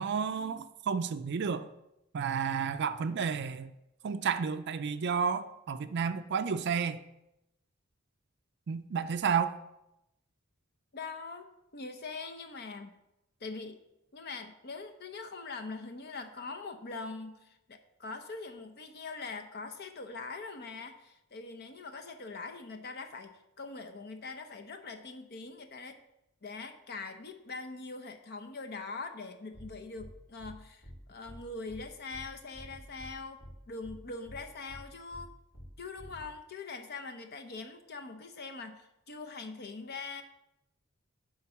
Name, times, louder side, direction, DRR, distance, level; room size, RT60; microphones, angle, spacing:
voice 1, 0.0-1.7 2.1-3.7 4.0-7.0 8.7-9.6, right 6 dB, 55° right, 0.4 m, -31 dB
voice 2, 10.9-12.9 13.4-13.8 14.1-26.0 26.4-35.4 35.8-40.2, left 3 dB, 50° left, 0.7 m, -43 dB
sound 1, 29.5-29.7 30.0-30.1 30.4-30.5 30.8-31.0 31.3-31.4 31.7-31.8 32.1-32.2 32.5-33.1 33.4-33.5 33.8-34.0 34.3-34.4 34.7-34.8 35.1-35.2 35.5-35.7 36.0-36.2, equal, 65° left, 3.3 m, -48 dB
10.5 x 3.9 x 7.1 m
head